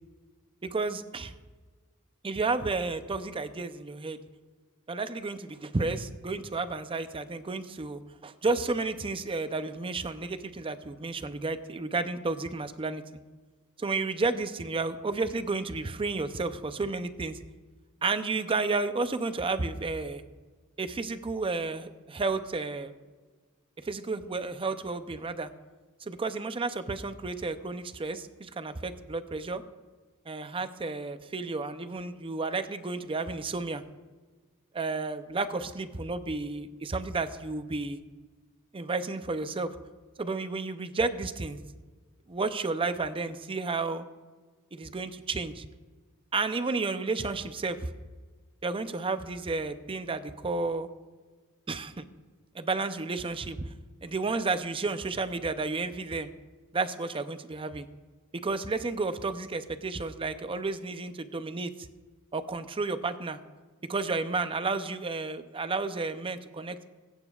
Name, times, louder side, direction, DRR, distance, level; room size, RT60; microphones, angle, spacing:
voice 1, 0.6-1.3 2.2-4.2 4.9-13.0 13.8-17.4 18.0-20.2 20.8-22.9 23.8-25.5 26.0-29.6 30.3-33.8 34.7-38.0 38.7-39.8 40.2-41.6 42.3-44.0 44.7-45.7 46.3-47.9 48.6-50.9 51.7-52.0 52.5-53.6 54.0-56.3 56.7-57.9 58.3-61.7 62.3-63.4 63.9-66.9, right 3 dB, 25° right, 10 dB, 0.5 m, -32 dB
22.5 x 8.9 x 2.4 m, 1.4 s
head